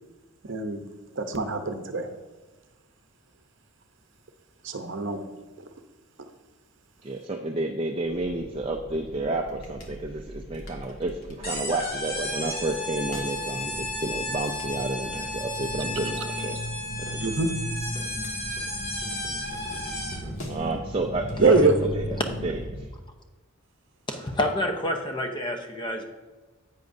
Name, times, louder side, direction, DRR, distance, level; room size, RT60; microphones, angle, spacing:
voice 1, 0.4-0.8 1.2-2.1 4.6-5.2 16.4-16.5 17.2-17.5 21.4-21.7, right 3 dB, 55° right, 7 dB, 0.7 m, -23 dB
voice 2, 7.0-16.6 17.2-17.3 20.5-21.7 22.0-22.1 22.4-22.6, right 2 dB, 25° right, 3 dB, 0.4 m, -30 dB
sound 1, 8.0-22.9, equal, 75° left, 1.5 m, -38 dB
sound 2, 11.4-20.3, left 1 dB, 45° left, 2.1 m, -33 dB
voice 3, 24.1-26.0, left 1 dB, 20° left, 4 dB, 0.7 m, -28 dB
10.5 x 8.2 x 2.6 m, 1.2 s
head